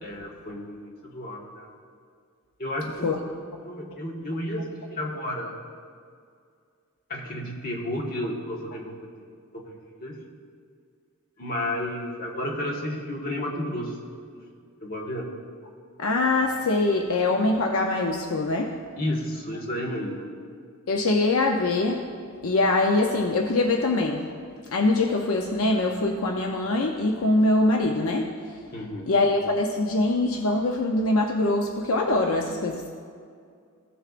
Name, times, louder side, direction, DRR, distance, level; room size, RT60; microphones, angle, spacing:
voice 1, 0.0-1.7 2.6-5.5 7.1-8.9 9.5-9.7 10.0-10.1 11.4-14.0 14.8-15.2 19.0-20.3 28.7-29.1, left 1 dB, 40° left, -2 dB, 1.4 m, -32 dB
voice 2, 16.0-18.7 20.9-22.0 22.4-24.3 24.7-28.6 29.1-32.9, left 2 dB, 75° left, 2 dB, 0.6 m, -23 dB
16.0 x 6.7 x 2.5 m, 2.2 s
head